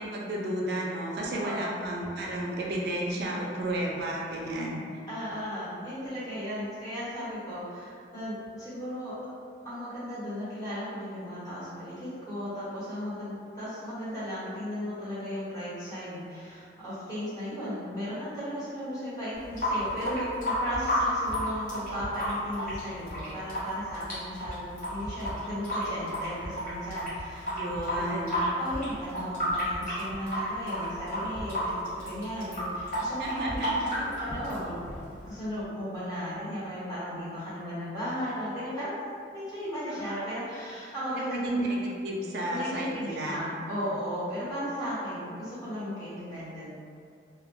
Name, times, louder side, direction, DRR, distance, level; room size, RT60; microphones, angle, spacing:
voice 1, 0.0-4.8 27.5-28.4 33.2-33.8 39.9-40.2 41.1-43.4, right 1 dB, 60° right, -2 dB, 0.3 m, -32 dB
voice 2, 1.4-1.9 5.1-7.6 8.1-8.3 8.6-9.1 9.6-13.3 13.6-16.2 16.8-27.4 27.9-32.7 33.0-34.8 35.2-39.0 39.3-41.5 42.5-45.4 45.6-46.7, equal, 20° left, -13 dB, 0.9 m, -35 dB
Water tap faucet / Sink (filling or washing) / Drip, 19.3-35.3, equal, 45° left, 0.9 m, -32 dB
2.1 x 2.0 x 2.9 m, 2.3 s
head